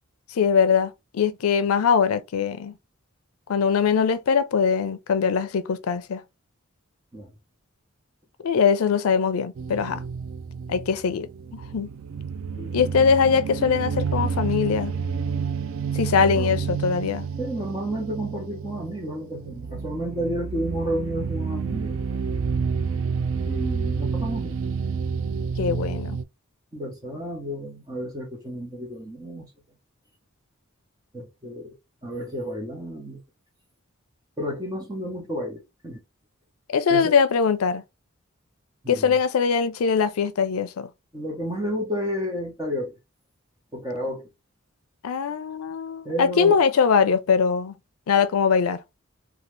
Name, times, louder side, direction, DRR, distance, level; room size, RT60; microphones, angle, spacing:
voice 1, 0.3-2.7 3.5-6.2 8.4-10.0 10.7-11.3 11.5-11.9 12.7-14.9 15.9-17.3 25.6-26.2 36.7-37.8 38.9-40.9 45.0-47.7 48.1-48.8, left 6 dB, 90° left, 0.4 m, -22 dB
sound 1, 9.6-26.2, right 5 dB, 70° right, 0.4 m, -29 dB
voice 2, 17.4-22.0 23.5-24.6 26.7-29.5 31.1-31.8 32.0-33.2 34.4-36.0 36.9-37.1 38.8-39.2 41.1-42.9 43.7-44.3 46.0-46.5, equal, 15° right, 0.8 m, -31 dB
2.7 x 2.4 x 3.2 m
head